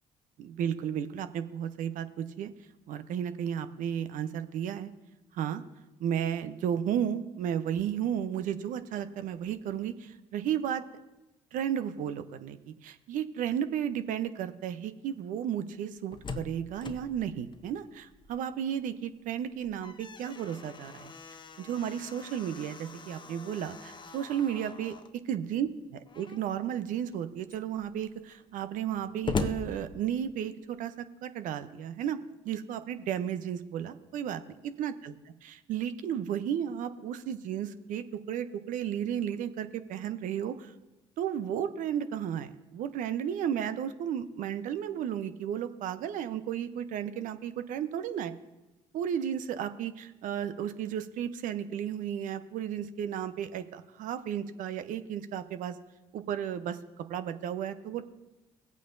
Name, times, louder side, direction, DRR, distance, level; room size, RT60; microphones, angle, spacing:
voice 1, 0.4-2.5 2.9-4.9 5.3-5.6 6.0-10.8 11.5-21.1 21.6-24.9 25.3-30.9 31.2-32.2 32.4-34.4 34.8-35.2 35.4-40.7 41.2-48.3 48.9-55.8 56.1-56.8 57.1-58.0, right 9 dB, 65° right, 11 dB, 0.7 m, -33 dB
Slam, 15.8-18.6 19.0-19.1 19.5-25.2 26.0-26.6 27.1-27.2 27.4-30.6, left 4 dB, 35° left, 0.8 m, -41 dB
18.0 x 8.4 x 2.6 m, 1.0 s
hypercardioid pair, 50°, 15 cm